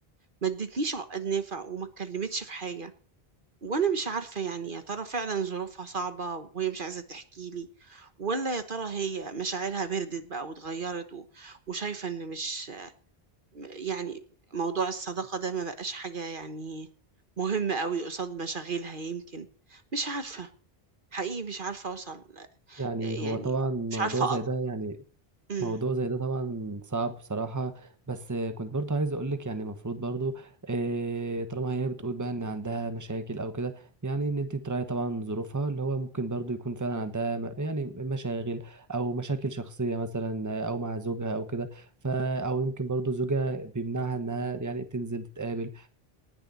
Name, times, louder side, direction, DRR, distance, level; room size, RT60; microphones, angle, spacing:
voice 1, 0.4-2.9 3.6-12.9 13.5-14.2 14.5-16.9 17.4-20.5 21.1-23.5 23.9-24.4 25.5-25.8, right 5 dB, 55° right, 10 dB, 1.4 m, -33 dB
voice 2, 22.8-25.0 25.6-45.9, right 3 dB, 15° right, 9 dB, 1.2 m, -31 dB
19.0 x 6.9 x 6.9 m, 0.43 s
omnidirectional pair, 1.1 m